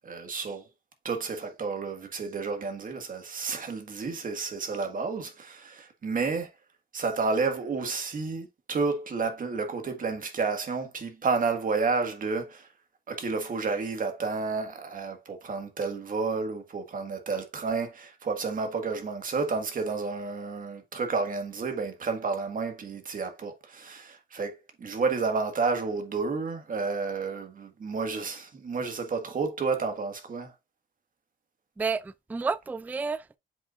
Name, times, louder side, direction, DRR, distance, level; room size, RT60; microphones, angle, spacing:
voice 1, 0.0-0.6 1.0-6.5 6.9-12.7 13.1-30.5, right 4 dB, 45° right, 1.7 m, -31 dB
voice 2, 31.8-33.4, right 4 dB, 10° right, 0.3 m, -31 dB
7.5 x 5.4 x 2.5 m
cardioid pair, 90°, 20 cm